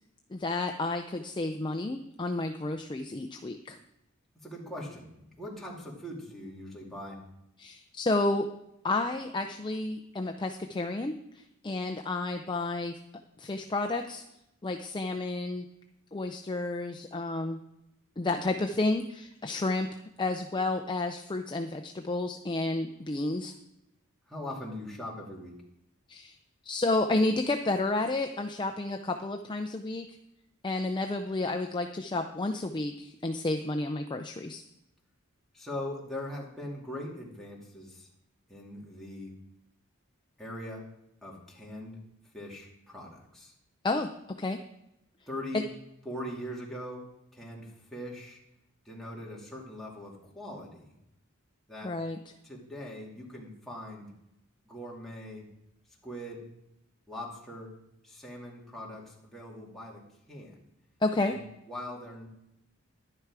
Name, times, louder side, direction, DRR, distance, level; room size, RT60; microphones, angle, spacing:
voice 1, 0.3-3.8 7.6-8.5 8.8-12.9 13.4-14.2 14.6-15.6 16.1-17.6 18.2-19.9 20.2-23.5 26.1-26.4 26.7-30.1 30.6-34.6 43.8-44.1 44.4-44.6 45.5-45.6 51.8-52.2 61.0-61.4, left 2 dB, 20° left, 5 dB, 0.5 m, -31 dB
voice 2, 4.4-7.2 24.3-25.6 35.5-38.1 38.5-39.3 40.4-40.9 41.2-42.0 42.3-43.5 45.3-45.7 46.0-48.4 48.8-51.0 51.7-51.9 52.4-54.1 54.7-55.5 56.0-56.5 57.1-57.7 58.0-60.7 61.2-62.3, left 1 dB, ahead, -4 dB, 2.3 m, -41 dB
11.5 x 9.8 x 4.8 m, 0.84 s
head